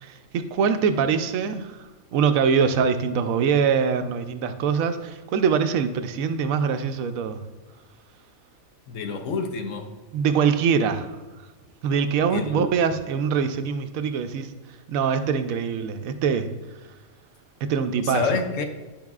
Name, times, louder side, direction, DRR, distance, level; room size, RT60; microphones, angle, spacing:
voice 1, 0.0-1.8 2.1-7.4 10.1-11.1 11.8-14.5 14.9-16.5 17.6-18.3, right 6 dB, 80° right, 9 dB, 1.0 m, -23 dB
voice 2, 8.9-9.9 12.3-12.7 18.0-18.6, left 4 dB, 70° left, 6 dB, 1.0 m, -28 dB
10.5 x 5.4 x 2.4 m, 1.2 s
omnidirectional pair, 1.5 m